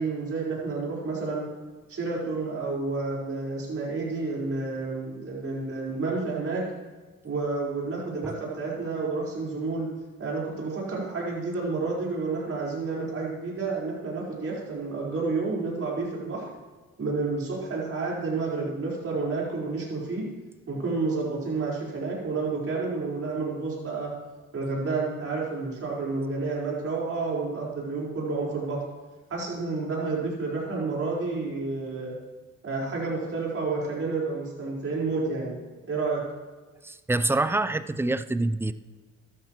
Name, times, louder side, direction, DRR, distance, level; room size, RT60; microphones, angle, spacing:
voice 1, 0.0-1.4 1.9-6.6 7.2-9.9 10.2-16.4 17.0-20.2 20.7-24.1 24.5-28.8 29.3-32.1 32.6-35.6 35.9-36.2, right 3 dB, 50° right, -4 dB, 4.5 m, -30 dB
voice 2, 36.8-38.7, right 2 dB, 10° right, 13 dB, 0.4 m, -26 dB
13.5 x 12.5 x 3.1 m, 1.3 s
cardioid pair, 90°, 30 cm